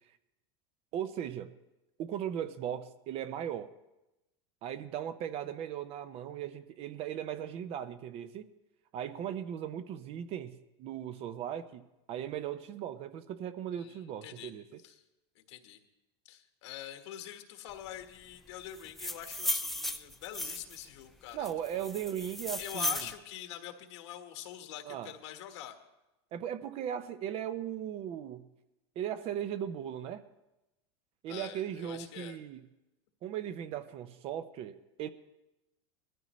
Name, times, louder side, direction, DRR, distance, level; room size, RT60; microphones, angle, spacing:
voice 1, 0.9-1.5 2.0-3.7 4.6-8.5 8.9-14.8 21.3-23.0 24.9-25.1 26.3-28.5 29.0-30.2 31.2-32.6 33.2-35.1, right 10 dB, 45° right, 11 dB, 0.6 m, -38 dB
voice 2, 13.8-14.5 14.8-14.9 15.3-15.8 16.3-21.8 22.6-25.8 31.3-32.4, left 11 dB, 80° left, 6 dB, 1.5 m, -45 dB
sound 1, 18.8-20.8 21.4-23.1, left 1 dB, ahead, 0.4 m, -35 dB
20.0 x 13.5 x 3.1 m, 0.96 s
supercardioid pair, 135°, 14 cm